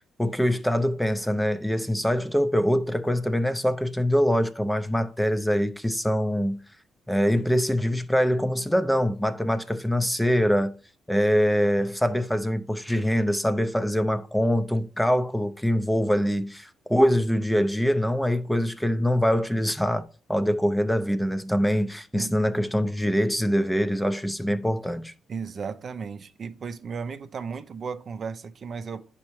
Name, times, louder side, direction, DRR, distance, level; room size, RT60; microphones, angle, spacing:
voice 1, 0.2-6.6 7.1-10.7 11.1-25.1, equal, 5° left, 0.5 m, -24 dB
voice 2, 25.3-29.1, right 5 dB, 50° right, 0.5 m, -35 dB
10.5 x 4.2 x 3.1 m
cardioid pair, 90°, 0 cm